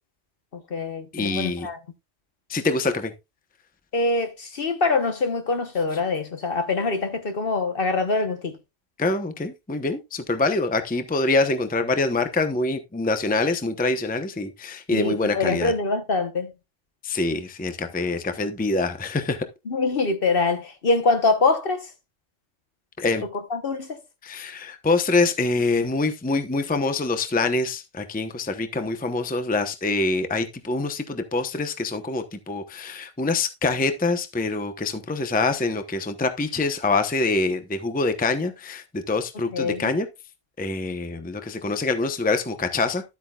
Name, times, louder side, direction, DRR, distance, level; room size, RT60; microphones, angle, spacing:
voice 1, 0.5-1.8 3.9-8.6 14.9-16.5 19.7-21.9 23.5-24.0 39.5-39.9, left 3 dB, 50° left, 1.2 m, -24 dB
voice 2, 1.1-1.7 2.5-3.1 9.0-15.7 17.0-19.4 23.0-23.2 24.2-40.1 40.6-43.0, left 3 dB, 10° left, 0.7 m, -25 dB
12.0 x 8.4 x 2.3 m
omnidirectional pair, 1.3 m